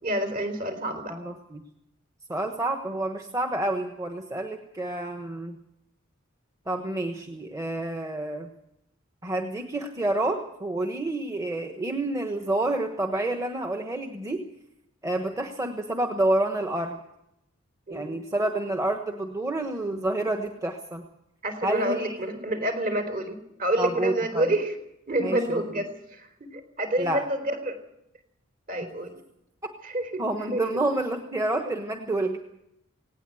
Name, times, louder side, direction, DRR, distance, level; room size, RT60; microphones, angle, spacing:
voice 1, 0.0-1.1 17.9-18.1 21.4-24.8 25.1-27.8 28.7-29.1 29.8-30.2 30.5-30.6, right 1 dB, 45° right, 8 dB, 4.1 m, -28 dB
voice 2, 1.1-1.6 2.3-5.6 6.7-8.5 9.2-14.5 15.0-17.0 17.9-21.1 21.6-22.4 23.8-24.5 25.2-25.6 27.0-27.2 28.8-28.9 29.6-29.7 30.2-32.4, right 2 dB, 15° right, 4 dB, 1.3 m, -29 dB
18.5 x 18.0 x 7.8 m, 0.80 s
head